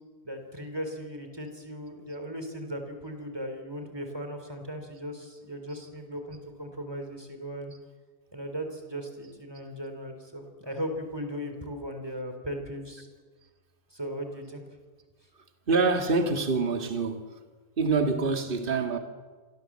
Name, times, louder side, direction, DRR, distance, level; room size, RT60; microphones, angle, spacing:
voice 1, 0.2-7.7 8.3-13.1 13.9-14.6, equal, 15° right, 5 dB, 3.8 m, -37 dB
voice 2, 15.7-17.3 17.8-19.0, right 4 dB, 35° right, 5 dB, 2.2 m, -25 dB
28.0 x 23.0 x 7.6 m, 1.5 s
omnidirectional pair, 1.7 m